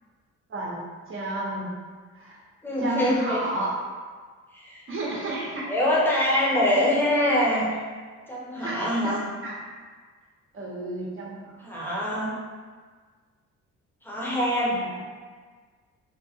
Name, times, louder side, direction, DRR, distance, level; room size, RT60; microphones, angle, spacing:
voice 1, 1.1-1.7 2.1-2.4 2.8-3.7 4.9-5.7 6.8-7.0 8.6-9.6 10.5-11.7 14.8-15.0, right 1 dB, 45° right, -3 dB, 0.9 m, -32 dB
voice 2, 2.6-3.5 4.5-4.8 5.6-7.7 8.3-9.2 11.6-12.4 14.0-14.8, left 1 dB, 5° left, -6 dB, 1.0 m, -24 dB
3.8 x 2.1 x 3.5 m, 1.5 s
cardioid pair, 90°, 30 cm